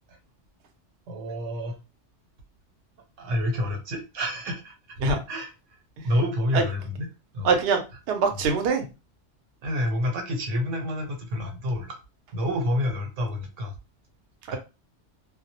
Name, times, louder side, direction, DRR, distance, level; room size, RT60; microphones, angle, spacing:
voice 1, 1.1-1.8 3.2-4.7 5.1-5.5 6.0-7.1 7.3-7.5 9.6-12.0 12.3-13.7 14.5-14.6, left 1 dB, 90° right, 1.0 m, -28 dB
voice 2, 7.4-7.8 8.1-8.8 14.5-14.6, right 4 dB, 65° right, 0.7 m, -23 dB
2.2 x 2.0 x 2.7 m
omnidirectional pair, 1.2 m